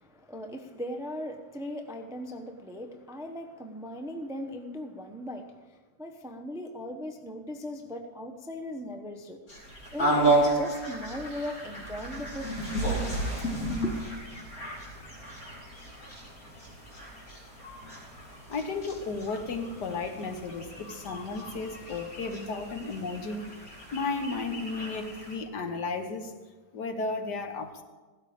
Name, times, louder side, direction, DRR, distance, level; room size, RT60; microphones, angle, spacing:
voice 1, 0.0-9.4 9.9-13.3 13.8-14.0, equal, 5° right, 5 dB, 0.5 m, -39 dB
sound 1, 9.5-25.3, right 2 dB, 55° left, 3.6 m, -33 dB
voice 2, 18.5-23.5 23.9-26.4 26.7-27.8, left 3 dB, 70° left, 6 dB, 1.8 m, -34 dB
16.0 x 12.5 x 5.1 m, 1.4 s
omnidirectional pair, 1.9 m